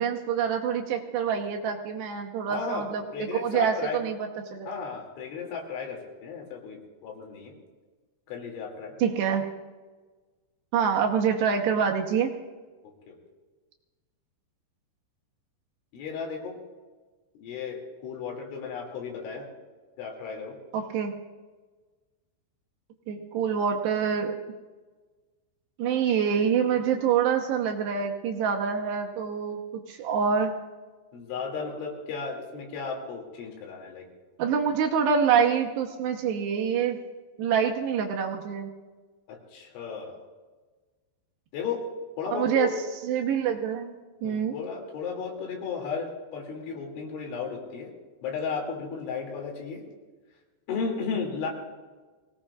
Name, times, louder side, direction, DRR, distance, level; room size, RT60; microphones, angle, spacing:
voice 1, 0.0-4.8 9.0-9.4 10.7-12.3 20.7-21.1 23.1-24.4 25.8-30.6 34.4-37.0 37.4-38.7 42.3-42.7 43.1-44.0 44.2-44.6, right 7 dB, 75° right, 2 dB, 2.8 m, -26 dB
voice 2, 2.5-4.0 4.7-7.6 8.3-8.9 13.1-13.2 15.9-16.6 17.3-19.5 20.0-20.6 31.1-34.1 39.3-40.2 41.5-41.8 42.2-42.7 44.2-47.9 48.2-49.8 50.7-51.5, left 5 dB, 80° left, 0 dB, 5.0 m, -34 dB
23.5 x 17.5 x 2.4 m, 1.3 s
omnidirectional pair, 5.4 m